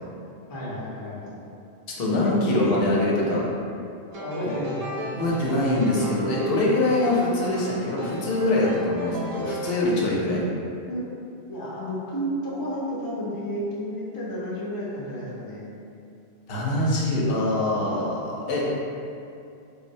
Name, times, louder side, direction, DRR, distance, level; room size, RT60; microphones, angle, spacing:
voice 1, 0.5-1.4 2.2-3.4 4.2-4.9 10.9-11.1 11.5-15.7, equal, 30° left, -7 dB, 0.4 m, -31 dB
voice 2, 2.0-3.4 4.4-4.5 5.1-10.5 16.5-18.6, left 2 dB, 60° left, -4 dB, 0.8 m, -24 dB
sound 1, 4.1-9.8, equal, 55° right, 0.4 m, -36 dB
3.6 x 2.0 x 2.6 m, 2.6 s
omnidirectional pair, 1.2 m